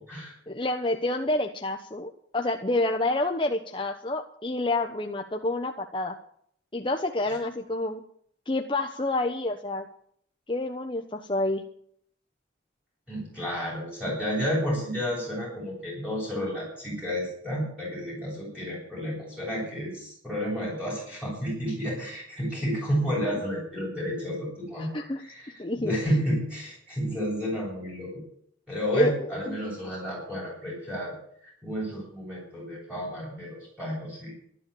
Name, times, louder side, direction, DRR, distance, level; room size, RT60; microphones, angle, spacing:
voice 1, 0.5-6.1 6.7-8.0 8.5-9.8 10.5-11.6 14.1-14.2 24.8-25.2 25.6-25.9 28.9-29.1 29.4-29.6, left 2 dB, 25° left, 3 dB, 0.9 m, -28 dB
voice 2, 13.1-28.2 28.7-31.1 31.4-34.3, equal, 5° right, -6 dB, 7.8 m, -31 dB
13.0 x 12.0 x 8.4 m, 0.64 s
head